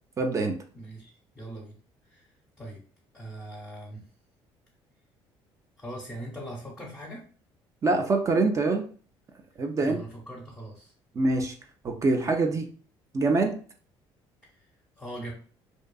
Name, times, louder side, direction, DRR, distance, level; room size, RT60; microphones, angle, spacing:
voice 1, 0.2-0.6 7.8-8.9 9.6-10.0 11.1-11.6 11.8-12.7 13.1-13.6, right 3 dB, 30° right, 4 dB, 0.4 m, -24 dB
voice 2, 0.7-1.8 2.0-2.8 3.1-4.1 5.8-7.2 9.8-10.9 14.4-14.7 15.0-15.3, right 1 dB, 5° left, -3 dB, 0.8 m, -41 dB
2.6 x 2.3 x 2.3 m, 0.42 s
cardioid pair, 105°, 10 cm